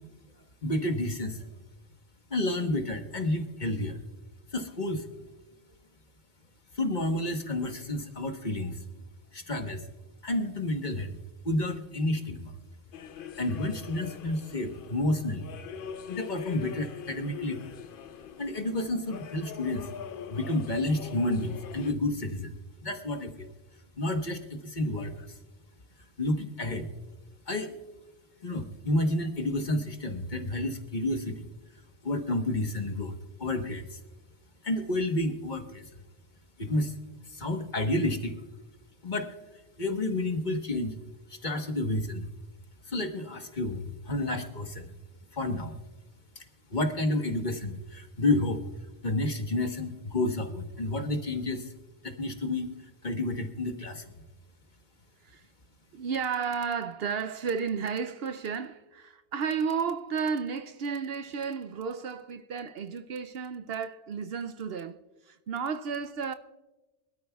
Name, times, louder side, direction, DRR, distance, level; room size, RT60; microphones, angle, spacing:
voice 1, 0.6-1.5 2.3-4.0 4.5-5.1 6.7-8.8 9.3-9.9 10.2-11.2 11.4-12.5 13.4-15.5 16.1-17.7 18.4-19.9 20.3-22.5 22.8-23.5 24.0-25.4 26.2-26.9 27.5-27.7 28.4-31.5 32.0-33.1 33.4-34.0 34.6-36.0 36.6-36.9 37.3-38.3 39.0-39.3 39.8-41.0 41.3-42.3 42.8-44.9 45.3-45.8 46.4-48.6 49.0-51.7 52.0-52.7 53.0-54.1, left 1 dB, 40° left, 1.3 m, -30 dB
sound 1, 12.9-21.9, left 8 dB, 60° left, 0.7 m, -43 dB
voice 2, 55.9-65.0 65.2-66.3, right 6 dB, 65° right, 0.7 m, -33 dB
24.5 x 12.5 x 2.3 m
omnidirectional pair, 1.2 m